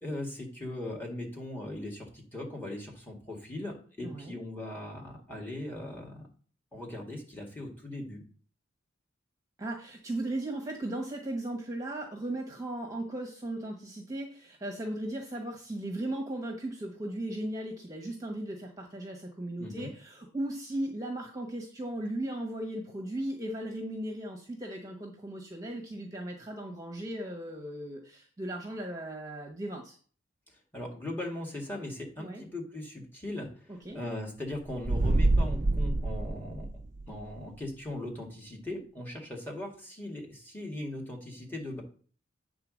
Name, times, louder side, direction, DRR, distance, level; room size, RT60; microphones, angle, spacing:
voice 1, 0.0-6.3 6.7-8.2 19.6-19.9 30.7-33.5 33.9-36.7 37.1-41.8, left 1 dB, 10° left, -1 dB, 1.9 m, -39 dB
voice 2, 4.0-4.4 9.6-30.0 32.2-32.4 33.7-34.0, right 1 dB, 15° right, 1 dB, 1.2 m, -37 dB
sound 1, 34.7-37.2, right 2 dB, 35° right, 0.5 m, -26 dB
8.6 x 3.9 x 6.3 m, 0.42 s
head